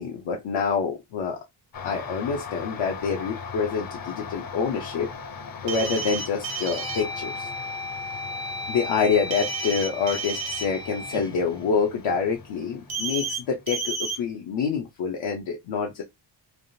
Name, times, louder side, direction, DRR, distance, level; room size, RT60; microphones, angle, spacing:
voice 1, 0.0-1.4 1.8-5.1 5.6-7.5 8.7-16.0, left 5 dB, 85° left, 0.7 m, -27 dB
sound 1, 1.7-13.8, left 5 dB, 50° left, 0.7 m, -40 dB
sound 2, 5.4-5.9 6.4-12.5, left 1 dB, 10° left, 0.3 m, -37 dB
sound 3, 5.7-7.0 9.3-10.6 12.9-13.4 13.7-14.2, right 4 dB, 90° right, 1.1 m, -31 dB
3.4 x 2.4 x 2.6 m
wide cardioid pair, 120°, 45 cm